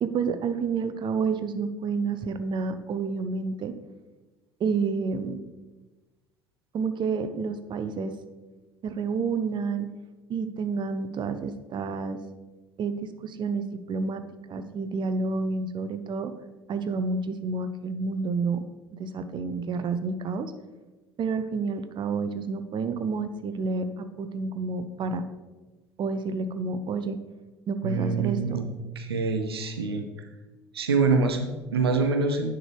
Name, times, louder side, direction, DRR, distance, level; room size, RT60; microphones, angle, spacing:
voice 1, 0.0-3.7 4.6-5.4 6.7-8.1 8.8-9.9 10.3-12.2 12.8-14.2 14.5-16.3 16.7-18.6 18.9-20.5 21.2-25.2 26.0-27.2 27.7-28.6, right 4 dB, 40° right, 10 dB, 0.6 m, -29 dB
voice 2, 27.8-28.7 29.0-30.0 30.7-32.5, right 4 dB, 85° right, 6 dB, 0.6 m, -25 dB
9.8 x 4.6 x 3.4 m, 1.2 s
hypercardioid pair, 65°, 13 cm